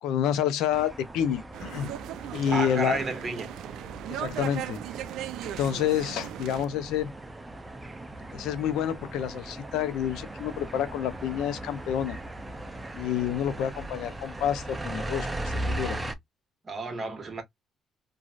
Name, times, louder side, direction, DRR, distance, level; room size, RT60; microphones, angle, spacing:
voice 1, 0.0-1.9 2.3-3.0 4.1-4.8 5.4-7.1 8.3-12.2 13.0-16.0, left 9 dB, 85° left, 0.5 m, -28 dB
sound 1, 0.7-16.1, right 1 dB, 15° right, 0.6 m, -38 dB
sound 2, 1.5-6.7, right 12 dB, 85° right, 0.3 m, -37 dB
voice 2, 2.5-3.5 16.6-17.4, right 3 dB, 35° right, 1.2 m, -31 dB
3.0 x 2.7 x 2.4 m
cardioid pair, 95°, 0 cm